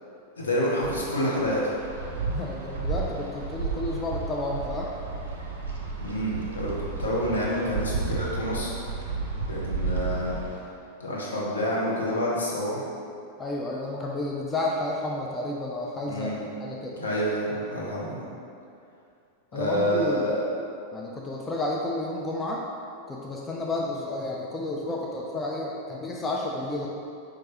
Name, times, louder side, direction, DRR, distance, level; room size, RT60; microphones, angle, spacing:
voice 1, 0.4-1.6 6.0-6.7 7.0-8.7 9.5-10.3 11.0-12.8 16.0-16.5 17.0-18.3 19.5-20.4, equal, 70° left, -5 dB, 0.8 m, -28 dB
Wind, 0.8-10.6, right 4 dB, 65° right, 0.5 m, -32 dB
voice 2, 2.3-4.9 13.4-16.3 16.6-17.0 19.5-20.3 20.9-22.6 23.1-26.9, left 2 dB, 15° left, -2 dB, 0.4 m, -31 dB
4.4 x 2.5 x 2.9 m, 2.5 s
figure-of-eight pair, 90°, 0 cm